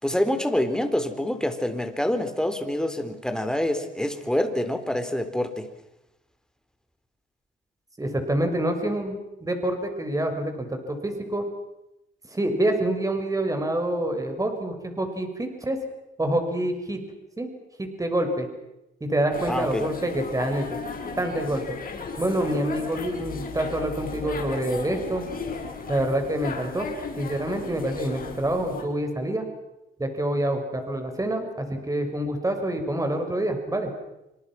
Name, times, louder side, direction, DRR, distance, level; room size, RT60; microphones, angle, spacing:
voice 1, 0.0-5.7 19.5-19.8, left 1 dB, 5° left, 7 dB, 4.2 m, -26 dB
voice 2, 8.0-11.4 12.3-15.8 16.2-17.0 17.4-17.5 17.8-18.5 19.0-20.8 21.2-21.6 22.2-25.2 25.9-26.9 27.2-29.5 30.0-33.9, right 1 dB, 15° right, 5 dB, 5.6 m, -27 dB
sound 1, 19.3-28.8, left 4 dB, 45° left, 7.3 m, -36 dB
28.5 x 26.0 x 6.1 m, 0.91 s
cardioid pair, 90°, 20 cm